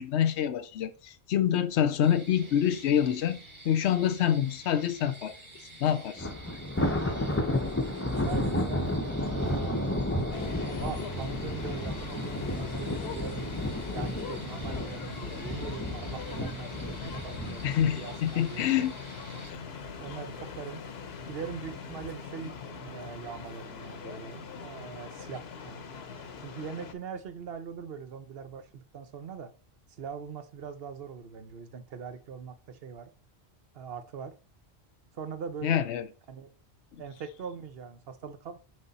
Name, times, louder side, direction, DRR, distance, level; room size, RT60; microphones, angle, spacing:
voice 1, 0.0-3.4 3.6-5.3 5.8-6.3 17.6-18.9 19.5-19.6 35.6-36.0, left 9 dB, 90° left, 0.9 m, -26 dB
sound 1, 2.0-19.5, right 2 dB, 25° right, 1.6 m, -49 dB
Thunder, 6.2-19.5 19.8-20.1 20.5-20.6 21.5-22.1, left 1 dB, 15° left, 0.6 m, -32 dB
voice 2, 8.0-10.0 10.8-13.6 13.9-18.7 20.0-20.8 21.3-25.8 26.4-29.5 29.9-33.1 33.7-34.3 35.1-35.8 36.3-36.5 37.0-38.6, right 6 dB, 65° right, 1.0 m, -41 dB
sound 2, 10.3-26.9, left 5 dB, 70° left, 1.1 m, -42 dB
6.4 x 5.1 x 4.1 m
omnidirectional pair, 1.1 m